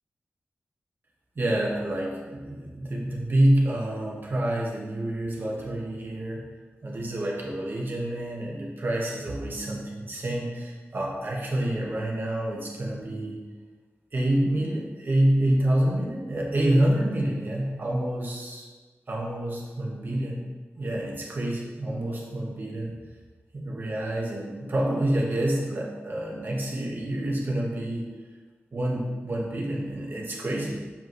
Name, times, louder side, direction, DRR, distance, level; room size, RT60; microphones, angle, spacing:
voice 1, 1.3-6.5 6.8-13.4 14.1-18.7 19.1-20.5 20.8-22.9 23.5-28.1 28.7-30.8, right 1 dB, 45° right, -3 dB, 1.5 m, -27 dB
7.2 x 5.2 x 3.2 m, 1.4 s
wide cardioid pair, 110°, 5 cm